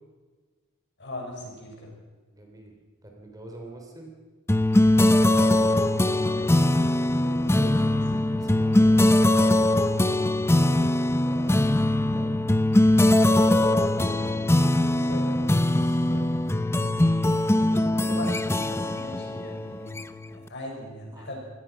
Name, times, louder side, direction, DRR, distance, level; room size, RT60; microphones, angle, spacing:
voice 1, 1.0-1.9 6.2-6.6 7.2-8.4 9.9-10.1 10.7-10.8 14.9-15.4 17.6-19.9 20.3-21.4, left 1 dB, 55° left, 0 dB, 6.7 m, -40 dB
voice 2, 2.3-2.7 3.0-4.1 8.3-9.2 11.2-11.7 12.1-12.4 13.0-13.9 15.7-16.3 21.1-21.4, right 1 dB, 15° right, 1 dB, 3.5 m, -44 dB
sound 1, 4.5-20.4, left 1 dB, 10° left, 0.7 m, -21 dB
26.5 x 18.0 x 6.0 m, 1.4 s
head